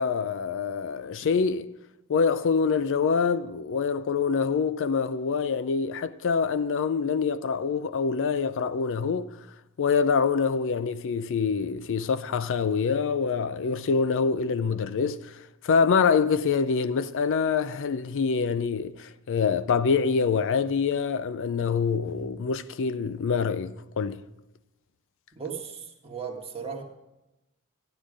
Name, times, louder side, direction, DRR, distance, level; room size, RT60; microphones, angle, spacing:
voice 1, 0.0-1.7 2.1-9.3 9.8-15.3 15.6-24.2, left 5 dB, 60° left, 0.4 m, -25 dB
voice 2, 25.3-26.8, right 6 dB, 25° right, 1.6 m, -36 dB
12.5 x 9.9 x 5.0 m
head